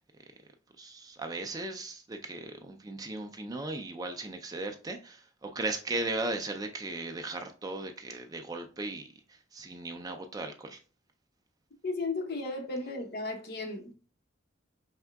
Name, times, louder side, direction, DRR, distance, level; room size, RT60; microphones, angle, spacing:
voice 1, 0.8-10.8, right 2 dB, 20° right, 0.3 m, -37 dB
voice 2, 11.8-13.9, left 3 dB, 50° left, 0.8 m, -35 dB
4.7 x 3.5 x 2.2 m
head